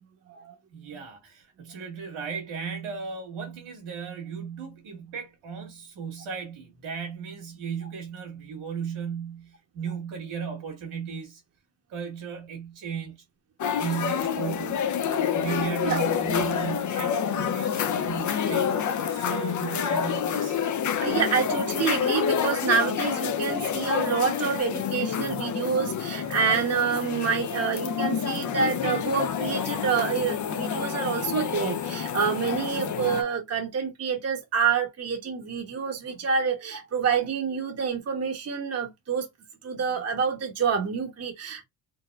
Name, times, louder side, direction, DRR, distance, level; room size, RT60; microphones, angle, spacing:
voice 1, 0.7-11.4 11.9-13.1 13.7-14.8 15.3-18.7 19.1-20.6, right 6 dB, 75° right, 1.9 m, -35 dB
sound 1, 13.6-33.2, left 8 dB, 40° left, 0.5 m, -28 dB
voice 2, 21.0-39.3 39.6-41.6, right 6 dB, 30° right, 0.9 m, -27 dB
4.0 x 2.2 x 2.3 m
cardioid pair, 70°, 49 cm